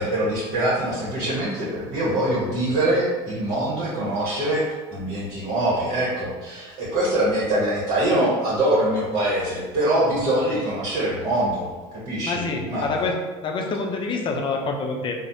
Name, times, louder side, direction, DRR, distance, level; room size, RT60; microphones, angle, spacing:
voice 1, 0.0-11.7 12.1-13.1, right 1 dB, 55° right, -7 dB, 1.0 m, -24 dB
voice 2, 12.1-13.2 13.4-15.1, left 4 dB, 35° left, 2 dB, 0.5 m, -26 dB
3.2 x 2.0 x 2.6 m, 1.3 s
supercardioid pair, 85°, 14 cm